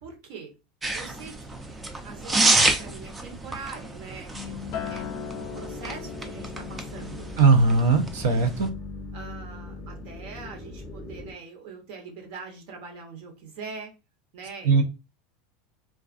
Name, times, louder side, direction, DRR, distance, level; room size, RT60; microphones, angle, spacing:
voice 1, 0.0-0.5 0.9-7.3 9.1-13.9 14.3-14.8, right 4 dB, 65° right, 0.9 m, -42 dB
sound 1, 0.8-8.7, right 2 dB, 15° right, 0.4 m, -29 dB
sound 2, 4.3-11.3, left 3 dB, 15° left, 0.7 m, -40 dB
Acoustic guitar, 4.7-9.1 9.5-9.9, left 8 dB, 55° left, 0.4 m, -40 dB
voice 2, 7.4-8.7 14.6-14.8, right 4 dB, 85° right, 0.6 m, -19 dB
2.3 x 2.3 x 2.4 m
supercardioid pair, 135°, 0 cm